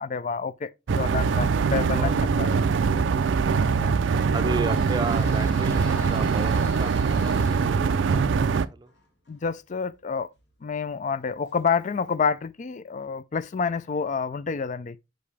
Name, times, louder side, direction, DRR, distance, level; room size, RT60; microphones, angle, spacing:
voice 1, 0.0-2.6 3.8-3.9 9.3-10.3 10.6-15.0, left 5 dB, 40° left, 0.4 m, -28 dB
sound 1, 0.9-8.7, right 5 dB, 80° right, 0.4 m, -23 dB
voice 2, 1.9-2.3 3.2-3.3 4.3-8.4 8.7-8.9, right 3 dB, 25° right, 0.5 m, -34 dB
Squeak, 3.5-12.1, left 2 dB, 70° left, 1.9 m, -48 dB
5.7 x 5.2 x 3.2 m
head